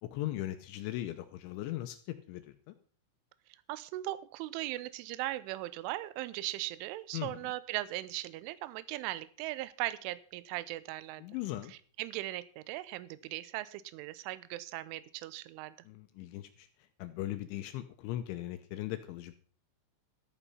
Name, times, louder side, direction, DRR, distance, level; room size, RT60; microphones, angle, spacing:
voice 1, 0.0-2.7 7.1-7.5 11.2-11.7 15.9-16.7 17.0-19.3, left 14 dB, 80° left, 9 dB, 3.0 m, -39 dB
voice 2, 3.7-11.2 11.7-15.8, right 16 dB, 80° right, 15 dB, 3.1 m, -38 dB
14.0 x 8.7 x 5.6 m, 0.42 s
omnidirectional pair, 5.9 m